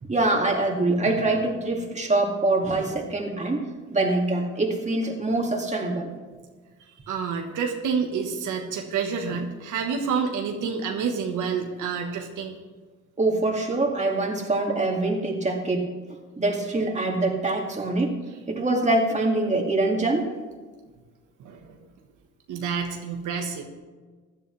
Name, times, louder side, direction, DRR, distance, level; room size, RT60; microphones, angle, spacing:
voice 1, 0.1-3.6 3.9-6.1 13.2-15.9 16.4-18.2 18.5-20.3, right 2 dB, 25° right, 1 dB, 2.2 m, -24 dB
voice 2, 7.1-12.5 21.4-21.8 22.5-23.6, right 6 dB, 85° right, 3 dB, 1.4 m, -28 dB
16.0 x 11.0 x 3.3 m, 1.4 s
cardioid pair, 90°, 30 cm